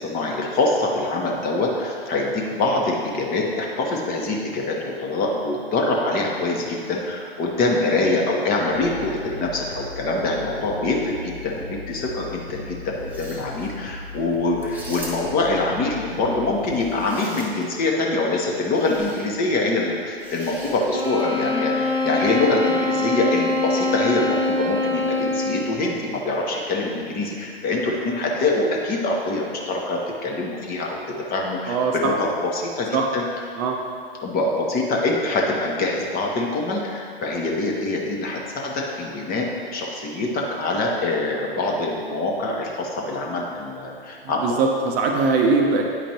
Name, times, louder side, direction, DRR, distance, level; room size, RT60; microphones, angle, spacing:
voice 1, 0.0-31.0 31.3-33.2 34.2-44.6, left 2 dB, 30° left, -1 dB, 1.1 m, -24 dB
sound 1, 8.7-16.9, left 3 dB, 50° left, 0.9 m, -38 dB
sound 2, 13.0-13.7 14.6-15.5 16.6-17.8 18.7-19.3 20.2-21.3, right 1 dB, 5° right, 1.1 m, -41 dB
sound 3, 20.9-25.8, left 2 dB, 85° right, 0.9 m, -24 dB
voice 2, 31.7-32.1 32.9-33.0 33.6-33.8 44.4-45.8, right 4 dB, 35° right, 1 dB, 0.6 m, -21 dB
8.9 x 5.0 x 3.0 m, 2.4 s
figure-of-eight pair, 100°, 30 cm